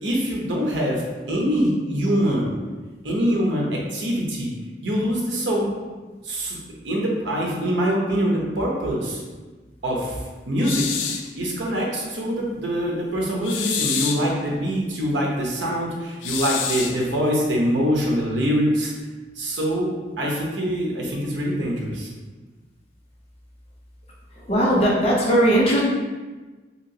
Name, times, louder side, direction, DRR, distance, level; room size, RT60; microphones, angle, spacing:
voice 1, 0.0-2.5 3.0-4.5 4.8-5.7 6.2-6.6 6.8-9.2 9.8-10.2 10.5-18.9 19.4-22.1, equal, 80° right, -3 dB, 0.7 m, -24 dB
sound 1, 10.6-11.3 13.4-14.3 16.2-17.0, left 7 dB, 90° left, 0.3 m, -27 dB
voice 2, 24.3-25.8, right 1 dB, 30° left, -4 dB, 0.6 m, -19 dB
2.9 x 2.8 x 2.7 m, 1.3 s
head